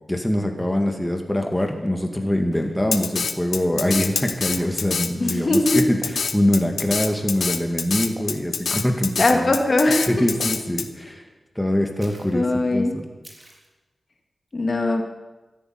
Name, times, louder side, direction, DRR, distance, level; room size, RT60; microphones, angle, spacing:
voice 1, 0.1-9.6 10.1-11.2 11.6-13.1, left 1 dB, 10° left, 3 dB, 2.3 m, -23 dB
sound 1, 0.8-0.9 1.5-1.8 2.5-2.8 3.5-3.8 4.5-4.7 6.0-6.3 7.1-7.3 8.2-8.5 9.3-9.5 10.4-10.6 12.0-12.4 13.2-13.7, right 1 dB, 25° right, 4.1 m, -43 dB
Drum kit, 2.9-10.9, left 5 dB, 75° left, 1.1 m, -26 dB
voice 2, 5.2-5.8 9.2-10.2 12.3-12.9 14.5-15.0, left 2 dB, 45° left, 3 dB, 2.3 m, -20 dB
13.5 x 10.5 x 9.6 m, 1.2 s
cardioid pair, 60°, 0 cm